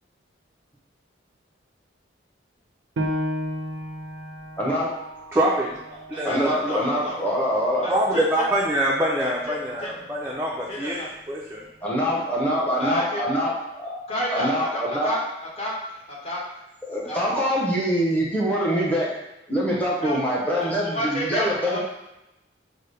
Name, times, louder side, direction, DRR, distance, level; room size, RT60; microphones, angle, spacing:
Piano, 3.0-8.1 8.6-8.7 9.3-9.8, equal, 75° right, 0.5 m, -34 dB
voice 1, 4.6-4.9 6.2-7.9 11.8-13.9 14.3-15.1 16.9-19.1 19.5-21.8, equal, 10° left, -6 dB, 0.7 m, -24 dB
voice 2, 5.3-6.8 7.9-11.0 11.3-11.6, right 1 dB, 15° right, -4 dB, 0.3 m, -25 dB
voice 3, 6.1-7.2 7.8-8.5 9.2-9.9 10.7-11.1 12.8-13.2 14.1-15.2 15.6-16.4 17.0-17.2 19.9-20.3 20.5-21.8, left 1 dB, 30° left, -5 dB, 1.0 m, -31 dB
5.5 x 2.0 x 3.3 m, 0.92 s
head